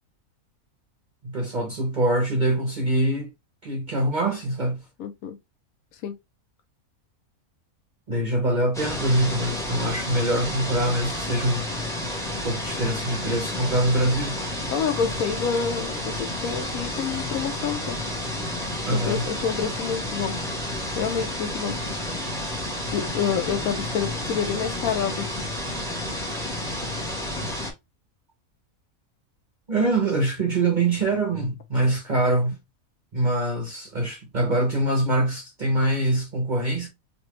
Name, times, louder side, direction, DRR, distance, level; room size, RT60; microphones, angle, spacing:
voice 1, 1.2-3.3 3.6-4.8 8.1-11.7 12.4-14.5 18.8-19.3 27.4-27.6 29.7-32.6 33.1-36.9, right 1 dB, 45° right, 0.6 m, -24 dB
voice 2, 5.0-5.4 6.0-6.2 14.7-18.0 18.9-20.3 21.0-21.8 22.9-25.3, left 7 dB, 75° left, 1.0 m, -28 dB
sound 1, 8.7-27.7, left 1 dB, 5° left, 0.7 m, -31 dB
3.2 x 2.5 x 3.0 m
omnidirectional pair, 1.6 m